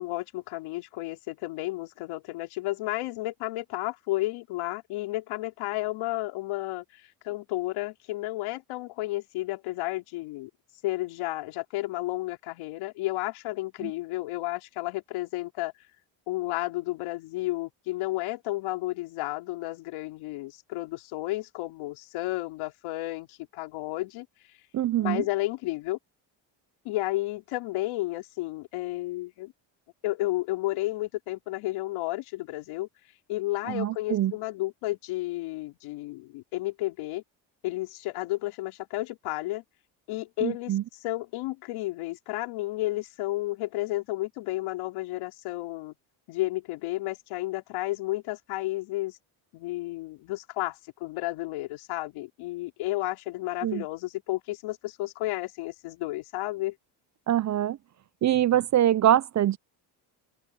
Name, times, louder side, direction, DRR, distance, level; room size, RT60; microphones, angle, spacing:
voice 1, 0.0-10.5 10.8-15.7 16.3-24.3 25.0-26.0 26.9-29.5 30.0-32.9 33.3-37.2 37.6-39.6 40.1-40.8 41.0-45.9 46.3-49.2 49.5-56.8, left 18 dB, 85° left, 3.5 m, -32 dB
voice 2, 24.7-25.2 33.7-34.3 40.4-40.8 53.6-53.8 57.3-57.8 58.2-59.6, right 11 dB, 40° right, 0.5 m, -24 dB
open air
supercardioid pair, 85°, 48 cm